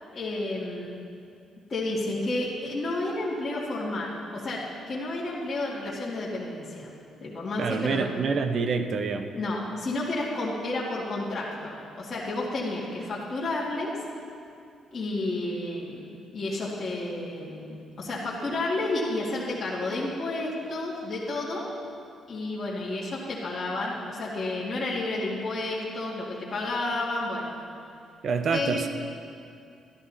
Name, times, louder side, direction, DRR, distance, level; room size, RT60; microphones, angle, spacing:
voice 1, 0.1-0.9 1.7-6.9 7.2-8.1 9.3-13.9 14.9-16.1 16.3-21.7 22.3-27.5 28.5-28.8, left 2 dB, 35° left, -8 dB, 2.2 m, -31 dB
voice 2, 7.6-9.4 28.2-28.9, right 5 dB, 55° right, 8 dB, 0.8 m, -27 dB
12.5 x 11.0 x 4.2 m, 2.5 s
cardioid pair, 90°, 0 cm